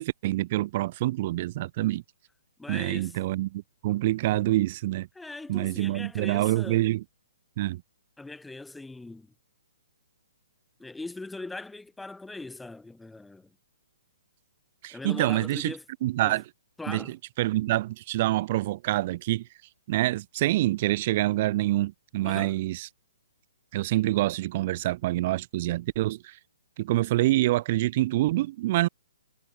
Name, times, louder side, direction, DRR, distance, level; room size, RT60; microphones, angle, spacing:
voice 1, 0.0-2.0 2.7-5.1 5.5-7.0 7.6-7.8 14.8-15.7 16.0-16.4 16.9-19.4 19.9-22.9 23.7-26.4 26.8-28.9, right 16 dB, 40° right, 1.5 m, -26 dB
voice 2, 2.6-3.2 5.2-6.8 8.2-9.3 10.8-13.5 14.9-15.8 16.2-16.4 16.8-17.1 22.2-22.6, left 2 dB, 5° left, 2.4 m, -40 dB
figure-of-eight pair, 130°, 0 cm